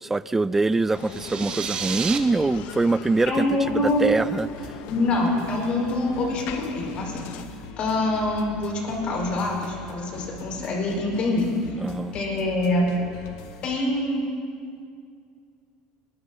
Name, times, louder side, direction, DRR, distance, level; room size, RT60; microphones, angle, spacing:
voice 1, 0.0-4.5 11.8-12.1, right 3 dB, 10° right, 18 dB, 0.3 m, -24 dB
Bicycle, 0.9-7.5, left 10 dB, 65° left, 0.8 m, -40 dB
sound 1, 0.9-2.2, right 7 dB, 40° right, 1.1 m, -31 dB
voice 2, 3.3-4.1 4.9-11.8 12.1-12.9 13.6-14.2, left 2 dB, 45° left, -1 dB, 5.4 m, -25 dB
sound 2, 3.6-13.8, left 4 dB, 80° left, 1.3 m, -42 dB
21.5 x 21.5 x 3.0 m, 2.3 s
supercardioid pair, 125°, 3 cm